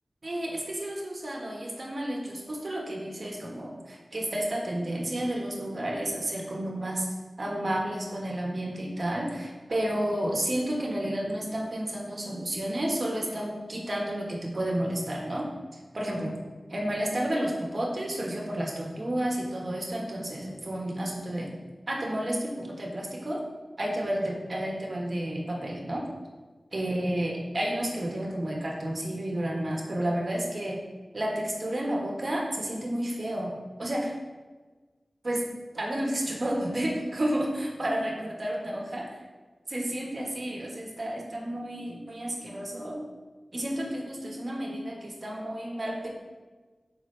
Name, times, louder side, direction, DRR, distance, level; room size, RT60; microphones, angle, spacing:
voice 1, 0.2-7.1 7.4-15.5 15.9-16.3 16.7-21.5 21.9-23.4 23.8-26.1 26.7-30.8 31.1-34.1 35.2-35.4 35.7-39.1 39.7-43.1 43.5-46.1, right 1 dB, 50° right, -2 dB, 1.2 m, -31 dB
6.1 x 5.1 x 3.2 m, 1.3 s
wide cardioid pair, 60°, 0 cm